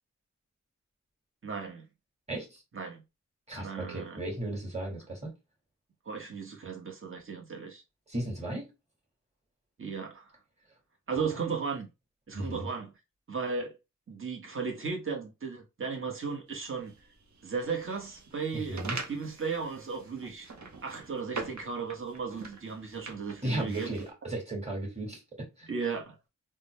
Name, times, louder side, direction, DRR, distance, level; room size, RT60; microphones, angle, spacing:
voice 1, 1.4-1.9 2.7-3.0 3.6-4.2 6.1-7.8 9.8-10.3 11.1-11.9 12.3-12.9 13.3-13.8 14.1-16.9 17.4-18.8 19.1-20.5 20.8-23.9 25.7-26.2, right 5 dB, 45° right, 1.1 m, -35 dB
voice 2, 2.3-2.6 3.5-5.3 8.1-8.7 11.1-11.3 12.3-12.7 18.5-19.0 23.4-25.7, right 1 dB, 20° right, 2.0 m, -35 dB
sound 1, 16.5-24.1, right 4 dB, 70° right, 0.9 m, -44 dB
3.6 x 2.1 x 3.2 m
cardioid pair, 45°, 30 cm